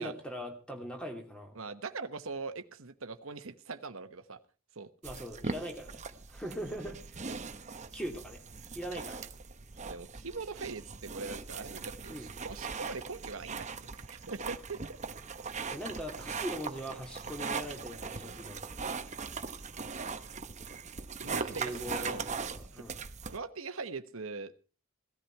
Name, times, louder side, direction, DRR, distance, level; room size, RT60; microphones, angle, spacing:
voice 1, 0.0-1.6 5.0-7.0 7.9-8.4 8.7-9.3 12.1-12.3 15.7-18.8 21.2-23.0, equal, 5° left, 3 dB, 2.7 m, -41 dB
voice 2, 1.5-4.4 4.7-4.9 9.8-13.7 13.9-14.8 21.2-22.3 22.7-23.0 23.3-24.5, right 4 dB, 70° right, 9 dB, 1.1 m, -41 dB
sound 1, 5.0-23.4, right 5 dB, 35° right, 0.9 m, -40 dB
17.0 x 13.5 x 4.6 m, 0.36 s
head